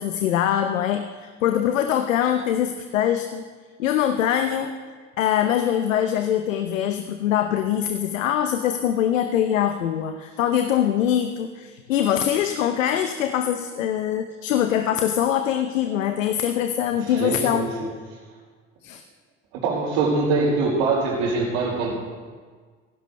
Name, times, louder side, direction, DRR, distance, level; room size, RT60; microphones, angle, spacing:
voice 1, 0.0-3.4 3.8-4.8 5.2-17.9 18.8-19.0, left 10 dB, 90° left, 7 dB, 0.8 m, -23 dB
voice 2, 17.0-17.9 19.5-21.9, right 3 dB, 75° right, -8 dB, 4.5 m, -23 dB
16.5 x 16.0 x 3.3 m, 1.5 s
hypercardioid pair, 80°, 38 cm